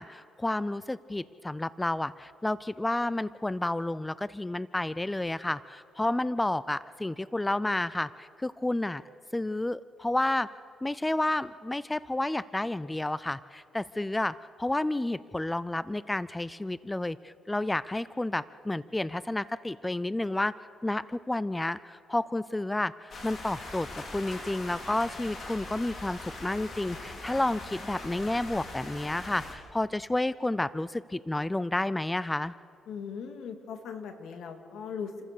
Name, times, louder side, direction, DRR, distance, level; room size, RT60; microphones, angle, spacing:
voice 1, 0.0-9.0 9.3-10.5 10.8-20.5 20.8-32.5, left 1 dB, 10° left, 17 dB, 0.4 m, -31 dB
sound 1, 23.1-29.6, left 2 dB, 50° left, 3.5 m, -41 dB
voice 2, 32.9-35.2, left 6 dB, 75° left, 6 dB, 2.2 m, -39 dB
28.5 x 14.5 x 6.7 m, 2.5 s
cardioid pair, 90°, 0 cm